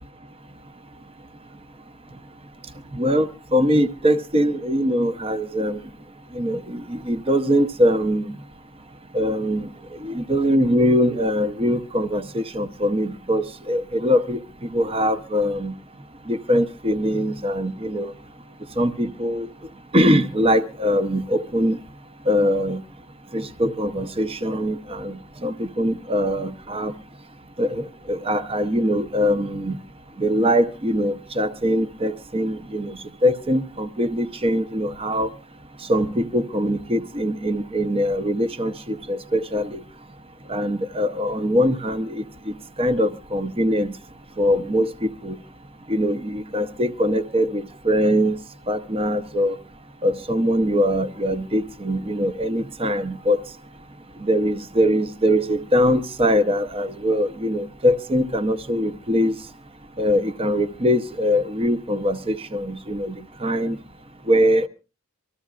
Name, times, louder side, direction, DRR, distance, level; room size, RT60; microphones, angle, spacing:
voice 1, 2.9-5.8 6.3-8.3 9.1-9.7 10.0-14.4 14.7-15.7 16.3-18.1 18.8-19.5 19.9-21.8 22.3-22.8 23.3-26.9 27.6-29.8 30.2-35.3 35.9-39.8 40.5-43.9 44.4-45.4 45.9-48.4 48.7-49.6 50.0-53.4 54.2-59.3 60.0-63.8 64.3-64.7, equal, 25° right, 0.8 m, -22 dB
24.5 x 14.0 x 2.5 m
head